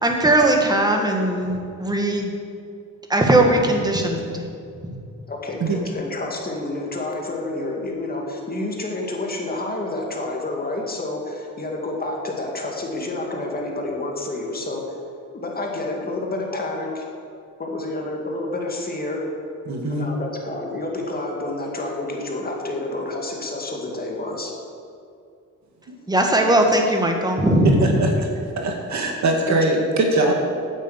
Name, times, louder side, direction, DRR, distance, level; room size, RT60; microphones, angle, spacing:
voice 1, 0.0-2.3 3.1-4.4 26.1-28.0, right 1 dB, 15° right, 2 dB, 1.6 m, -19 dB
voice 2, 5.3-15.0 15.3-17.1 17.6-19.3 19.9-24.5 29.5-29.6, left 2 dB, 30° left, 0 dB, 2.1 m, -29 dB
voice 3, 19.7-20.1 25.9-26.0 27.8-28.3 28.6-30.3, right 2 dB, 65° right, 2 dB, 2.0 m, -22 dB
9.5 x 8.8 x 8.1 m, 2.4 s
wide cardioid pair, 130°, 31 cm